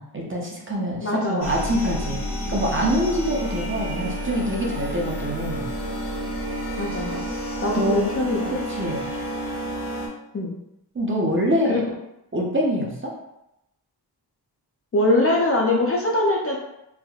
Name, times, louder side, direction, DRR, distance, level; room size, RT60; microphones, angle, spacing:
voice 1, 0.0-2.2 2.5-5.7 7.7-8.0 8.5-9.0 10.9-11.8 12.3-13.1, equal, 30° right, -2 dB, 0.5 m, -25 dB
voice 2, 1.0-1.7 6.8-7.2 7.6-8.5 10.3-10.6 11.7-11.8 14.9-16.6, left 2 dB, 35° left, -2 dB, 0.4 m, -22 dB
sound 1, 1.4-10.1, equal, 65° left, 0.8 m, -30 dB
3.4 x 2.6 x 2.3 m, 0.86 s
wide cardioid pair, 155°, 43 cm